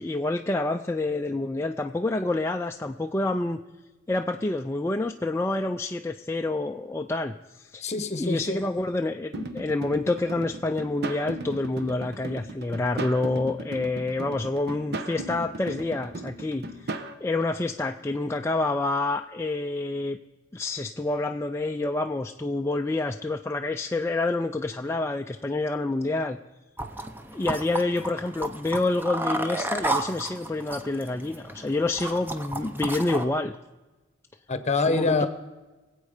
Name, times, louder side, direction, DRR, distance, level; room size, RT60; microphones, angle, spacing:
voice 1, 0.0-3.6 4.1-7.9 8.2-20.2 20.5-26.4 27.3-33.6 34.9-35.3, left 2 dB, 15° left, 3 dB, 0.4 m, -28 dB
voice 2, 7.8-8.6 34.5-35.3, left 3 dB, 35° left, 11 dB, 1.0 m, -25 dB
sound 1, 9.3-17.1, right 2 dB, 55° right, 0.9 m, -37 dB
sound 2, 26.8-33.2, right 1 dB, 10° right, 0.7 m, -32 dB
24.0 x 8.3 x 5.0 m, 1.2 s
head